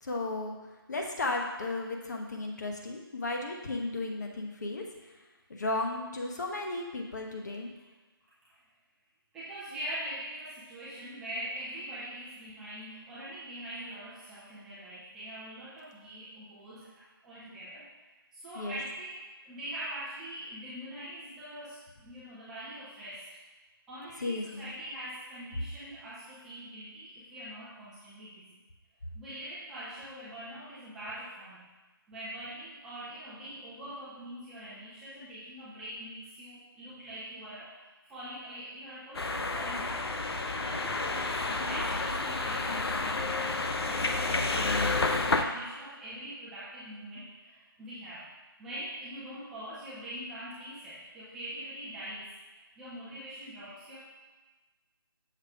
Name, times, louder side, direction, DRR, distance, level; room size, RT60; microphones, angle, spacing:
voice 1, 0.0-0.6 0.9-4.8 5.5-7.7 18.6-18.8 24.2-24.7, left 2 dB, 45° left, 1 dB, 0.9 m, -34 dB
voice 2, 9.3-17.9 18.3-23.2 23.9-28.6 29.1-31.7 32.1-40.2 40.6-43.5 43.8-48.3 48.6-54.0, right 1 dB, 5° right, -11 dB, 0.5 m, -43 dB
sound 1, 39.1-45.4, left 3 dB, 85° left, 0.6 m, -30 dB
6.8 x 3.1 x 4.8 m, 1.2 s
figure-of-eight pair, 165°, 13 cm